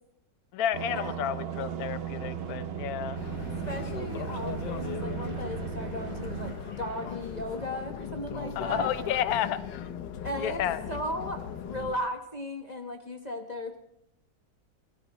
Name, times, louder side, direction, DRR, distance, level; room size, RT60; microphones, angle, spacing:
voice 1, 0.5-3.2 8.6-9.9 10.4-10.8, left 10 dB, 65° left, 12 dB, 1.2 m, -31 dB
sound 1, 0.7-6.5, right 9 dB, 65° right, 0.5 m, -36 dB
sound 2, 2.2-7.7, right 2 dB, 50° right, 3.3 m, -45 dB
sound 3, 3.1-12.0, left 8 dB, 80° left, 1.5 m, -39 dB
voice 2, 3.7-9.3 10.2-13.8, equal, 25° left, 4 dB, 1.2 m, -36 dB
25.5 x 18.0 x 3.1 m, 0.79 s
omnidirectional pair, 1.9 m